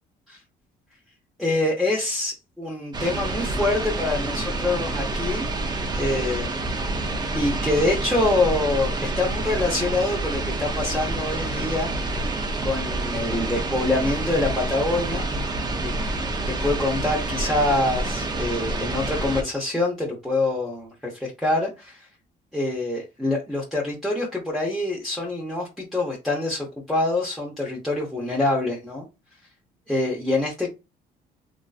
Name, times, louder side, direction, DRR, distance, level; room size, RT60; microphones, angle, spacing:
voice 1, 1.4-5.5 5.9-6.6 7.3-11.9 12.6-15.3 15.8-15.9 16.5-22.1 22.5-29.1 29.9-30.7, left 2 dB, ahead, -5 dB, 0.9 m, -25 dB
sound 1, 2.9-19.4, right 2 dB, 25° right, 0.6 m, -28 dB
2.9 x 2.5 x 2.4 m, 0.25 s
cardioid pair, 110°, 17 cm